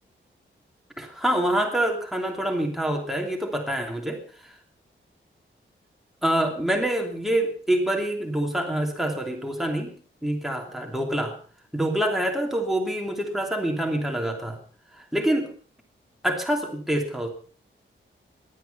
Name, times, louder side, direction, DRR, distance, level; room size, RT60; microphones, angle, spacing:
voice 1, 1.0-4.2 6.2-9.9 10.2-11.3 11.7-14.6 15.1-15.5 16.2-17.3, right 1 dB, ahead, 1 dB, 3.0 m, -26 dB
18.0 x 11.5 x 5.5 m, 0.43 s
wide cardioid pair, 175°, 20 cm